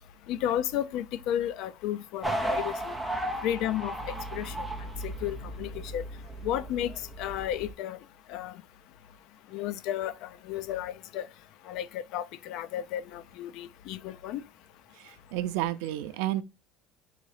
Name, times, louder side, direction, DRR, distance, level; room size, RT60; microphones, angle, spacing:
voice 1, 0.3-2.9 3.4-4.5 5.0-6.0 6.4-8.0 8.3-8.5 9.5-11.3 11.7-14.4, left 11 dB, 55° left, 0.3 m, -33 dB
sound 1, 2.2-7.7, right 1 dB, ahead, 0.6 m, -35 dB
voice 2, 15.0-16.4, right 14 dB, 80° right, 0.5 m, -31 dB
3.9 x 2.7 x 4.8 m
cardioid pair, 175°, 0 cm